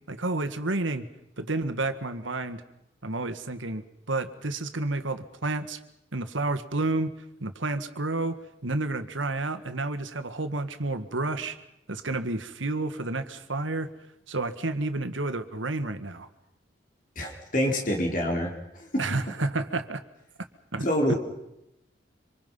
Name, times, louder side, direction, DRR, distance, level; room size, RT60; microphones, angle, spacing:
voice 1, 0.1-1.1 1.4-2.6 3.0-5.8 6.1-7.1 7.4-11.6 11.9-13.9 14.3-16.3 19.0-20.0 20.7-21.1, right 2 dB, 85° right, 9 dB, 1.9 m, -30 dB
voice 2, 17.2-19.0 20.8-21.2, equal, 45° left, 1 dB, 4.2 m, -27 dB
26.0 x 26.0 x 5.7 m, 0.86 s
head